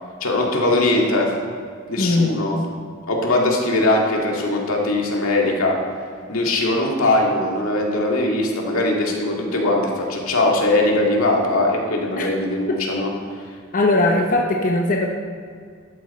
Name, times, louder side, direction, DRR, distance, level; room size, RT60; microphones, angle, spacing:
voice 1, 0.2-1.3 1.9-2.5 3.1-5.7 6.3-13.1, left 2 dB, 85° left, -1 dB, 2.1 m, -20 dB
voice 2, 2.0-2.4 12.2-12.3 13.7-15.1, left 2 dB, 40° left, 1 dB, 0.8 m, -19 dB
12.5 x 8.9 x 4.2 m, 2.1 s
head